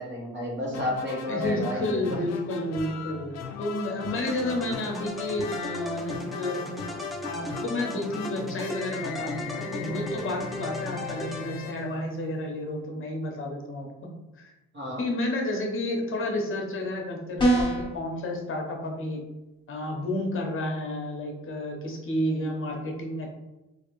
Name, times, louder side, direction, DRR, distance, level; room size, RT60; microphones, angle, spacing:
voice 1, 0.0-2.2 14.7-15.0, left 1 dB, 40° right, -4 dB, 1.3 m, -31 dB
sound 1, 0.7-12.6, left 6 dB, 60° left, 0.5 m, -39 dB
voice 2, 1.3-6.6 7.2-14.5 15.0-19.2 19.7-23.4, left 1 dB, 45° left, 2 dB, 0.9 m, -31 dB
sound 2, 4.2-11.9, equal, ahead, 0.4 m, -37 dB
sound 3, 17.4-18.0, right 1 dB, 15° left, 1.1 m, -22 dB
3.2 x 2.6 x 3.0 m, 1.0 s
cardioid pair, 90°, 30 cm